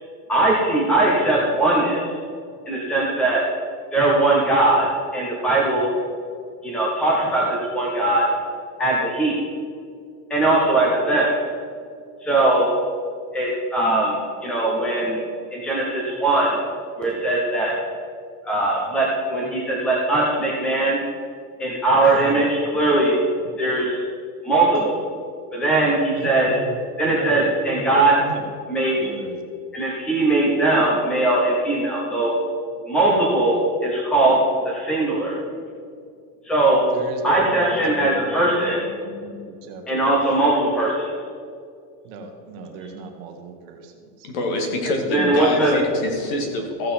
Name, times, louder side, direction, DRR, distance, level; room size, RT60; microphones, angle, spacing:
voice 1, 0.3-2.0 2.7-3.4 3.9-4.9 5.1-5.9 6.6-8.2 8.8-9.4 10.3-11.3 12.2-12.7 13.3-14.2 14.4-15.2 15.5-16.6 17.0-17.7 18.4-21.0 21.6-23.2 23.6-24.0 24.4-25.0 25.5-26.5 27.0-28.2 28.7-29.1 29.7-32.3 32.9-35.3 36.4-36.8 37.2-38.8 39.9-41.1 45.1-45.7, right 2 dB, ahead, -4 dB, 0.8 m, -20 dB
voice 2, 22.0-22.4 26.1-26.8 27.0-27.9 28.2-28.4 29.0-29.5 36.9-40.2 42.0-44.3, right 3 dB, 40° right, 3 dB, 1.3 m, -36 dB
voice 3, 44.2-46.9, left 2 dB, 55° left, 2 dB, 2.3 m, -25 dB
15.0 x 7.4 x 4.4 m, 2.3 s
supercardioid pair, 175°, 46 cm